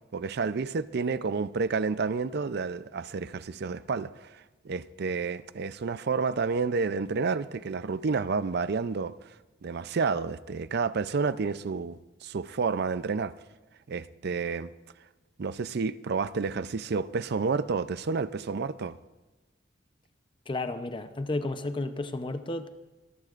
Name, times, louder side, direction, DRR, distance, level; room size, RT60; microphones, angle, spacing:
voice 1, 0.1-9.1 9.6-13.3 13.9-14.7 15.4-19.0, right 4 dB, 60° right, 0.5 m, -30 dB
voice 2, 20.5-22.7, left 2 dB, 25° left, 0.7 m, -32 dB
23.5 x 14.5 x 2.5 m
head